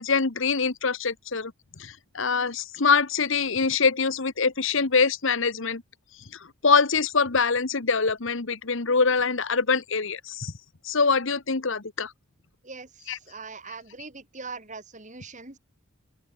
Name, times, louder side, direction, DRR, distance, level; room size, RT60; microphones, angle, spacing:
voice 1, 0.0-1.5 1.8-5.8 6.6-10.5 10.8-12.1 13.1-13.2, left 5 dB, 60° left, 1.1 m, -24 dB
voice 2, 13.3-15.6, right 4 dB, 35° right, 2.2 m, -41 dB
open air
head